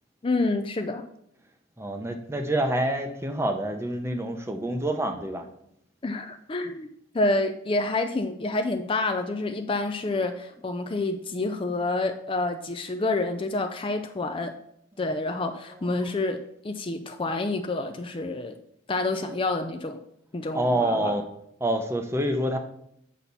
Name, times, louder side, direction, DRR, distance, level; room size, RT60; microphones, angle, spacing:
voice 1, 0.2-1.1 6.0-6.9 7.1-14.5 15.0-18.6 18.9-20.0 20.3-21.2, left 2 dB, 25° left, 7 dB, 0.4 m, -28 dB
voice 2, 1.8-5.5 10.1-10.2 10.5-10.6 15.5-16.1 20.5-21.2 21.6-22.6, right 1 dB, 15° right, 5 dB, 0.7 m, -27 dB
8.5 x 5.8 x 4.1 m, 0.75 s
head